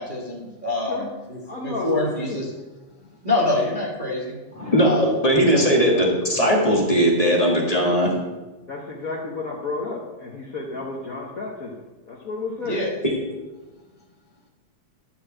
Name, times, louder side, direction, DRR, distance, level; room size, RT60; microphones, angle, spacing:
voice 1, 0.0-2.4 3.2-4.4 4.8-5.1 5.9-6.0 12.7-12.9, left 2 dB, 25° right, -3 dB, 1.1 m, -26 dB
voice 2, 1.4-2.5 4.6-4.8 8.7-12.8, left 3 dB, 85° left, -2 dB, 0.7 m, -31 dB
voice 3, 4.5-8.1, equal, 15° left, -2 dB, 1.3 m, -19 dB
12.0 x 4.7 x 7.6 m, 1.2 s
omnidirectional pair, 3.3 m